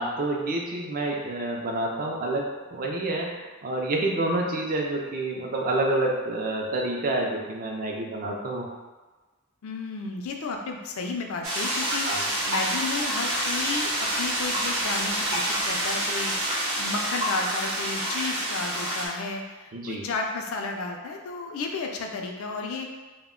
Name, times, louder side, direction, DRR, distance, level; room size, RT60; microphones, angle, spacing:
voice 1, 0.0-8.7 12.0-12.2 19.7-20.0, right 2 dB, 40° right, 0 dB, 0.4 m, -28 dB
voice 2, 9.6-13.9 14.2-22.8, left 3 dB, 70° left, 3 dB, 0.4 m, -33 dB
sound 1, 11.4-19.1, right 1 dB, 75° right, 0.7 m, -27 dB
2.1 x 2.1 x 3.5 m, 1.3 s
head